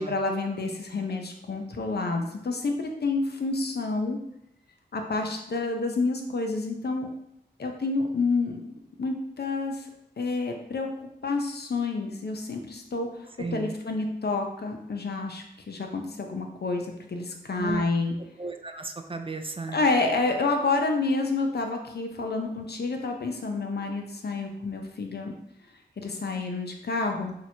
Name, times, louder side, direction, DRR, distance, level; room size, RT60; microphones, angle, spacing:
voice 1, 0.0-4.2 4.9-7.1 7.6-8.7 9.0-9.9 10.2-18.1 19.7-25.3 26.0-27.3, left 3 dB, 70° left, 3 dB, 0.7 m, -29 dB
voice 2, 13.4-13.8 17.6-17.8 18.4-19.8, right 3 dB, 30° right, 6 dB, 0.4 m, -34 dB
6.2 x 3.0 x 2.8 m, 0.79 s
wide cardioid pair, 80°, 18 cm